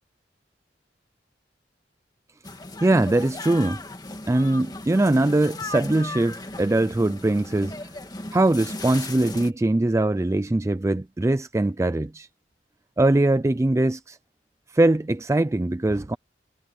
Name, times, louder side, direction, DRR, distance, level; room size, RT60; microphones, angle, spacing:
sound 1, 2.4-9.5, left 2 dB, 25° left, 2.0 m, -37 dB
voice 1, 2.8-3.8 4.3-8.0 8.3-12.3 13.0-14.2 14.7-16.2, right 2 dB, 15° right, 0.4 m, -22 dB
head